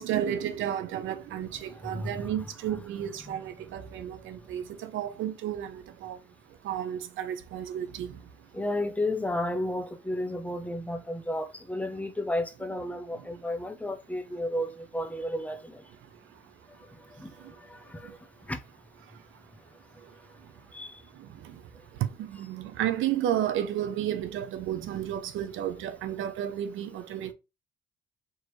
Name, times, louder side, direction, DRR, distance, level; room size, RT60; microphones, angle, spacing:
voice 1, 0.0-6.2 6.6-8.1 22.2-27.3, right 10 dB, 85° right, 0.7 m, -32 dB
voice 2, 1.7-2.3 3.2-3.5 8.5-15.8 16.9-18.2 18.5-18.6 20.7-21.0, left 1 dB, 5° left, 0.7 m, -33 dB
4.6 x 3.0 x 3.1 m
cardioid pair, 90°, 20 cm